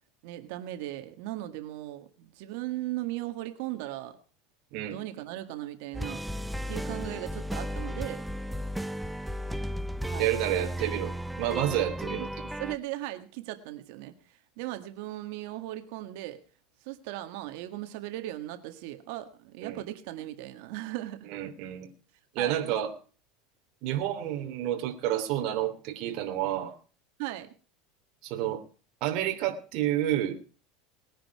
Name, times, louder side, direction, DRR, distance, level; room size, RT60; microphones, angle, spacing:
voice 1, 0.2-4.1 4.9-6.2 6.7-8.2 10.0-10.3 12.1-14.1 14.6-16.4 16.8-21.3 22.4-22.8 27.2-27.5, right 15 dB, 65° right, 8 dB, 1.7 m, -38 dB
sound 1, 5.9-12.8, equal, 5° right, 0.6 m, -34 dB
voice 2, 10.2-11.1 11.4-12.3 19.6-19.8 21.3-21.9 22.3-22.9 23.8-26.7 28.2-28.6 29.0-30.4, right 12 dB, 50° right, 4 dB, 3.1 m, -29 dB
20.0 x 10.0 x 4.8 m, 0.39 s
supercardioid pair, 155°, 0 cm